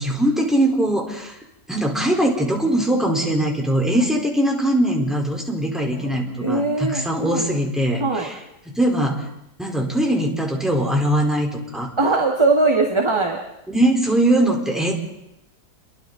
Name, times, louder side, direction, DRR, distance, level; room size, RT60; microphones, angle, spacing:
voice 1, 0.0-1.4 1.7-8.4 8.7-9.2 9.6-11.9 13.7-15.2, right 1 dB, ahead, -1 dB, 4.1 m, -21 dB
voice 2, 5.9-7.5 8.0-8.3 12.0-13.4, right 3 dB, 15° right, 0 dB, 1.9 m, -21 dB
30.0 x 22.5 x 4.0 m, 0.87 s
omnidirectional pair, 1.8 m